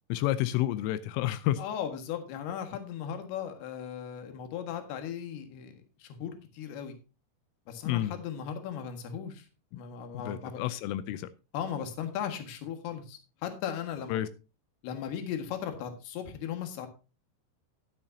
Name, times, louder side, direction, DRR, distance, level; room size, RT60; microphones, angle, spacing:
voice 1, 0.1-1.6 7.8-8.1 10.2-11.3 14.1-14.3, left 14 dB, 85° left, 3.3 m, -30 dB
voice 2, 1.6-5.7 6.0-7.0 7.7-9.5 9.7-10.6 11.5-14.2 14.8-16.9, left 8 dB, 65° left, 3.3 m, -37 dB
13.0 x 11.0 x 2.7 m
omnidirectional pair, 5.7 m